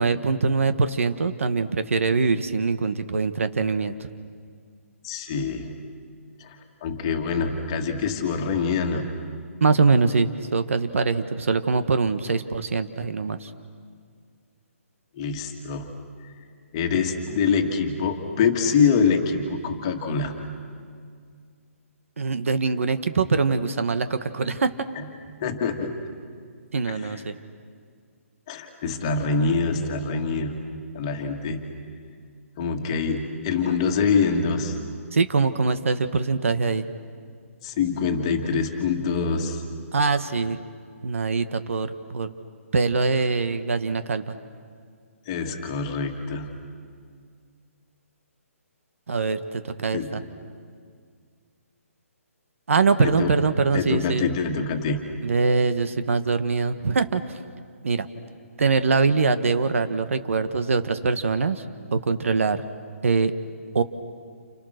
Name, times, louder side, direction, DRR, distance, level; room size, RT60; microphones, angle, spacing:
voice 1, 0.0-4.1 9.6-13.5 22.2-24.9 26.7-27.4 35.1-36.9 39.9-40.6 41.0-42.3 42.7-44.4 49.1-50.2 52.7-54.2 55.2-57.4 57.8-58.1 58.6-61.6 61.9-62.6 63.0-63.3 63.7-63.8, right 4 dB, 60° right, 10 dB, 1.3 m, -23 dB
voice 2, 5.0-5.7 6.4-6.6 6.8-9.1 15.1-15.9 16.7-20.4 25.0-25.1 25.4-26.0 26.9-27.1 28.5-30.6 30.9-31.6 32.6-34.8 37.6-39.6 45.3-46.5 49.9-50.2 53.0-53.3 53.7-55.1, left 5 dB, 20° left, 4 dB, 1.9 m, -25 dB
30.0 x 29.5 x 6.5 m, 2.1 s
hypercardioid pair, 175°, 8 cm